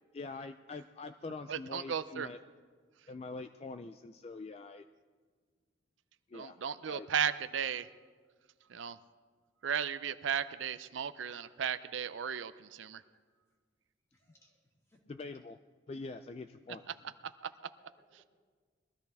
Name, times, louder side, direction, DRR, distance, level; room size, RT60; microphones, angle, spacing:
voice 1, 0.1-2.4 3.1-4.8 6.3-6.6 6.9-7.1 15.1-15.6 15.9-16.9, left 3 dB, 30° left, 9 dB, 0.3 m, -44 dB
voice 2, 1.5-2.3 6.3-7.9 8.7-9.0 9.6-13.0 17.4-17.5, right 8 dB, 80° right, 13 dB, 0.5 m, -35 dB
voice 3, 14.1-15.0 18.0-18.3, equal, 15° left, -1 dB, 2.2 m, -69 dB
21.5 x 13.5 x 3.5 m, 1.5 s
head